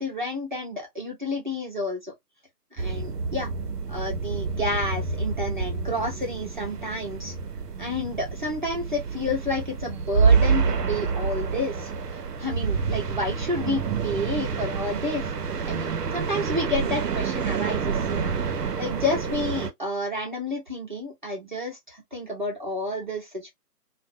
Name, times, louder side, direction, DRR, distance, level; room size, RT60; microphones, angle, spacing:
voice 1, 0.0-2.1 2.7-3.5 3.9-7.3 7.8-11.9 12.4-15.3 15.6-18.3 18.8-23.5, left 1 dB, 30° right, 0.6 m, -30 dB
sound 1, 2.8-19.7, right 5 dB, 75° right, 0.6 m, -27 dB
2.5 x 2.1 x 2.4 m
figure-of-eight pair, 145°, 48 cm